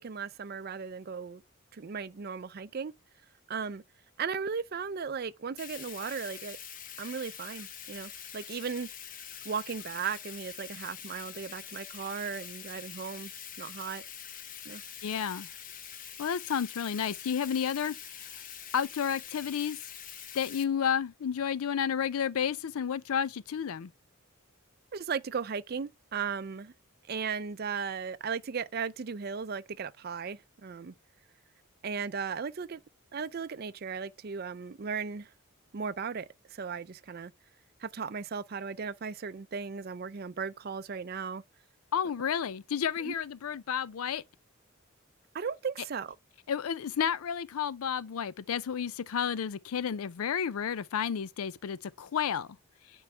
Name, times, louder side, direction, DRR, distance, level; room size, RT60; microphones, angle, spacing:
voice 1, 0.0-1.4 1.7-2.9 3.5-3.8 4.2-6.6 7.0-8.9 9.4-13.3 13.6-14.0 14.7-14.8 24.9-26.7 27.1-30.9 31.8-32.8 33.1-35.3 35.7-37.3 37.8-41.4 43.0-43.1 45.3-46.2, right 6 dB, 45° right, 0.4 m, -36 dB
Bathtub (filling or washing), 5.6-20.6, left 8 dB, 40° left, 0.8 m, -45 dB
voice 2, 15.0-15.5 16.2-18.0 18.7-19.8 20.3-23.9 41.9-44.2 46.5-52.5, left 7 dB, 90° left, 0.4 m, -31 dB
9.7 x 4.6 x 3.3 m
head